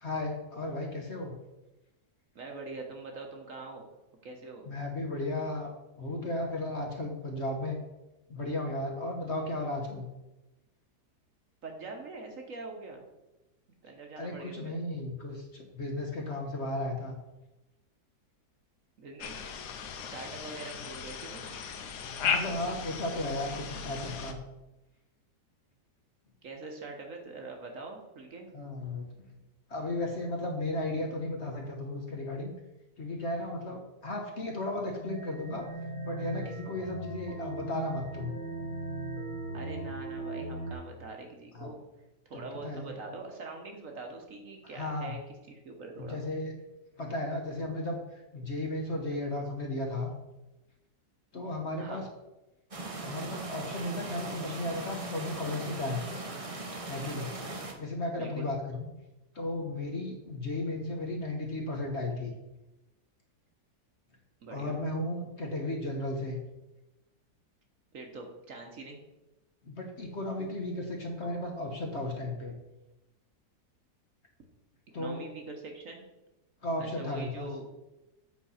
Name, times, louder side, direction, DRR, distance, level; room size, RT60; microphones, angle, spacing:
voice 1, 0.0-1.3 4.7-7.8 8.3-10.0 14.2-17.2 22.2-24.4 28.5-29.2 29.7-32.5 33.0-35.6 36.0-38.4 41.5-41.7 42.3-42.9 44.7-45.2 46.0-46.5 47.0-50.1 51.3-52.1 53.0-56.0 56.8-57.3 57.8-58.9 59.3-62.3 64.5-66.4 69.6-72.5 74.9-75.2 76.6-77.5, left 1 dB, 45° left, 2 dB, 1.2 m, -35 dB
voice 2, 2.3-3.9 4.2-4.7 11.6-13.0 13.8-14.8 19.0-19.4 20.0-21.6 26.4-28.5 39.5-41.8 42.2-45.2 45.5-46.2 51.8-52.0 58.1-58.5 64.4-64.7 67.9-69.0 74.9-76.1 76.8-77.7, right 3 dB, 55° right, 2 dB, 1.3 m, -43 dB
sound 1, 19.2-24.3, left 6 dB, 70° left, 1.3 m, -36 dB
sound 2, 35.0-40.7, right 2 dB, 30° left, 1.4 m, -38 dB
sound 3, 52.7-57.7, right 2 dB, 30° right, 0.7 m, -39 dB
8.3 x 4.0 x 5.6 m, 0.99 s
omnidirectional pair, 1.8 m